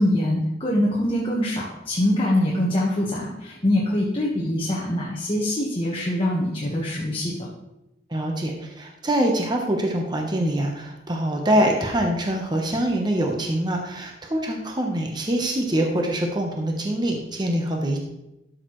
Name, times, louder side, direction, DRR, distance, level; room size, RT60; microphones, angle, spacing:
voice 1, 0.0-7.3, left 1 dB, 30° left, -4 dB, 1.3 m, -23 dB
voice 2, 8.1-18.0, right 1 dB, 25° right, 2 dB, 0.9 m, -24 dB
12.5 x 6.5 x 3.1 m, 0.92 s
head